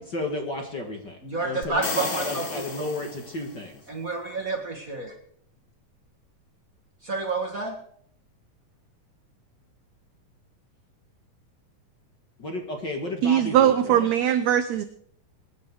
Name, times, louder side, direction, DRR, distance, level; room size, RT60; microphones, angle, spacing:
voice 1, 0.1-1.2 1.4-3.8 12.4-14.1, left 1 dB, 40° left, 2 dB, 1.8 m, -33 dB
voice 2, 1.2-2.5 3.9-5.1 7.0-7.8, right 3 dB, 35° right, 3 dB, 1.5 m, -29 dB
sound 1, 1.6-3.7, left 4 dB, 60° left, 0.7 m, -33 dB
voice 3, 13.2-14.8, right 10 dB, 75° right, 11 dB, 1.6 m, -20 dB
23.0 x 10.5 x 4.8 m, 0.65 s
omnidirectional pair, 3.9 m